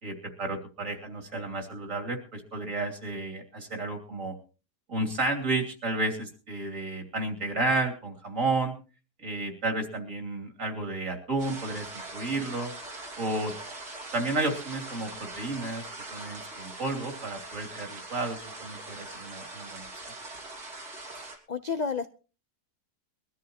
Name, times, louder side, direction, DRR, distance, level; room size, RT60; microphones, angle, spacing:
voice 1, 0.0-4.4 4.9-8.7 9.2-12.7 13.2-13.5 14.1-19.9, right 2 dB, 50° right, 3 dB, 3.4 m, -32 dB
sound 1, 11.4-21.4, right 2 dB, 70° right, 3.7 m, -42 dB
voice 2, 21.1-22.1, left 5 dB, 45° left, 10 dB, 0.5 m, -32 dB
22.5 x 13.5 x 2.9 m, 0.35 s
omnidirectional pair, 1.7 m